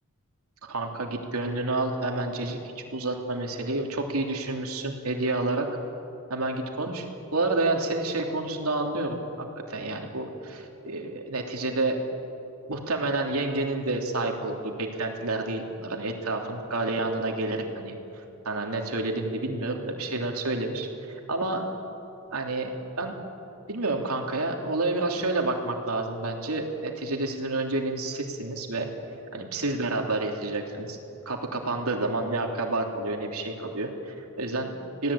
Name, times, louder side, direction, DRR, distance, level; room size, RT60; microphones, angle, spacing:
voice 1, 0.6-5.7 6.3-7.0 7.3-9.2 9.7-12.0 12.7-17.9 18.4-21.6 22.3-23.2 23.7-28.9 29.3-31.0 31.2-35.1, right 2 dB, 80° right, 2 dB, 3.1 m, -29 dB
26.0 x 18.0 x 8.7 m, 2.8 s
head